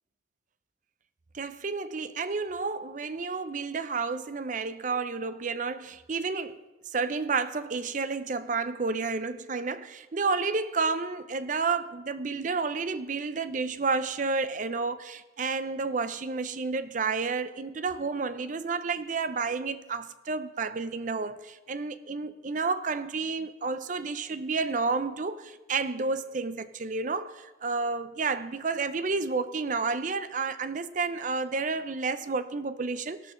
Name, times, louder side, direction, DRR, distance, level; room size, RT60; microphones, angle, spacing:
voice 1, 1.3-6.6 6.9-33.3, right 4 dB, 40° right, 0.5 m, -31 dB
18.0 x 11.5 x 3.2 m
head